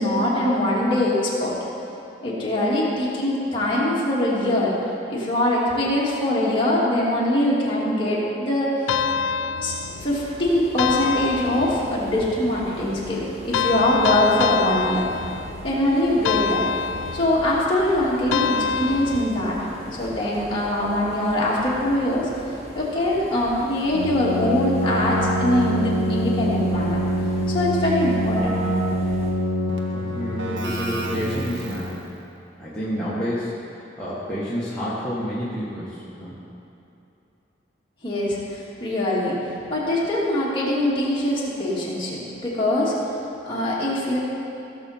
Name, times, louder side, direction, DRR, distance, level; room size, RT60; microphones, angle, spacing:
voice 1, 0.0-1.5 2.2-4.7 5.1-8.7 9.6-9.7 10.0-15.1 15.6-16.7 17.1-19.6 20.0-22.3 22.7-27.0 27.5-28.8 38.0-39.4 39.7-42.9 43.4-44.2, left 1 dB, 25° left, -7 dB, 2.4 m, -22 dB
sound 1, 8.9-10.2 10.8-12.1 13.5-15.7 16.2-17.5 18.3-19.6, left 6 dB, 85° left, 0.3 m, -26 dB
sound 2, 9.8-29.3, equal, 35° right, 2.3 m, -40 dB
Keyboard (musical), 23.9-32.1, equal, 75° right, 1.0 m, -25 dB
voice 2, 29.9-32.0 32.6-36.4, equal, 5° left, -11 dB, 1.5 m, -29 dB
16.5 x 7.0 x 4.3 m, 2.8 s
head